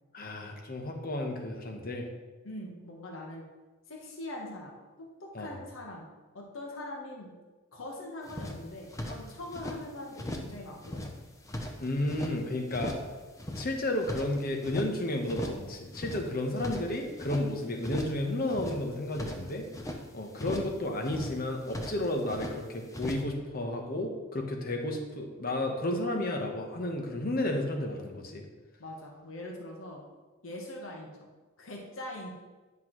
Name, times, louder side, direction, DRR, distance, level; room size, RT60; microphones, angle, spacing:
voice 1, 0.1-2.1 5.3-5.5 11.8-13.0 13.5-19.7 20.1-28.4, left 1 dB, 45° left, 3 dB, 1.0 m, -32 dB
voice 2, 2.4-3.4 3.9-6.0 6.3-7.3 7.7-11.0 28.8-30.0 30.4-31.1 31.6-32.3, left 1 dB, 75° left, -1 dB, 1.2 m, -42 dB
sound 1, 8.3-9.8 10.2-10.6 10.8-12.4 12.7-13.1 13.4-14.9 15.3-15.7 15.9-17.5 17.8-18.2 18.5-20.0 20.4-20.8 21.0-22.6 22.9-23.2, left 1 dB, 15° left, 0.6 m, -38 dB
9.9 x 5.8 x 3.1 m, 1.3 s
head